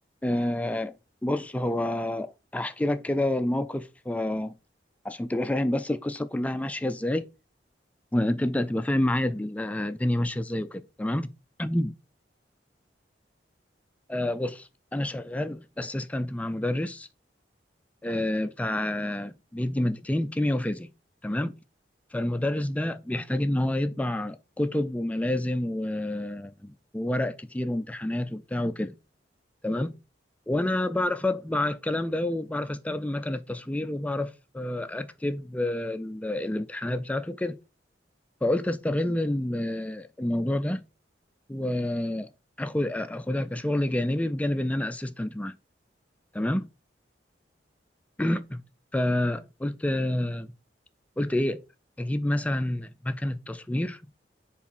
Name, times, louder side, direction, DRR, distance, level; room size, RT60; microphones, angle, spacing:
voice 1, 0.2-0.9 1.2-4.5 5.0-7.3 8.1-11.3 11.6-11.9 14.1-17.1 18.0-20.9 21.2-21.5 22.1-28.9 29.6-29.9 30.5-37.6 38.4-40.8 41.5-42.3 42.6-45.5 46.3-46.7 48.2-48.6 48.9-50.5 51.2-51.6 52.0-54.0, left 1 dB, 10° left, 0.3 m, -28 dB
4.9 x 4.1 x 5.3 m
head